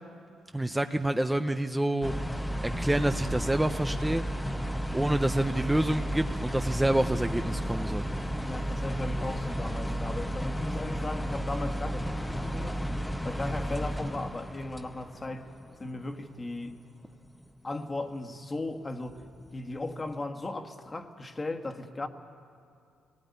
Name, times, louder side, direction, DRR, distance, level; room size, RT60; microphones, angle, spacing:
voice 1, 0.5-2.1 2.6-4.2 4.9-8.0, right 1 dB, 10° right, 0.7 m, -28 dB
sound 1, 2.0-16.1 16.4-16.7 17.3-17.5 18.5-18.6 19.1-19.8 20.2-20.3, equal, 5° left, 1.0 m, -33 dB
voice 2, 8.4-12.8 13.2-15.5 15.8-16.8 17.6-19.3 19.5-22.1, left 2 dB, 25° left, 1.6 m, -37 dB
21.5 x 18.5 x 9.6 m
cardioid pair, 90°, 0 cm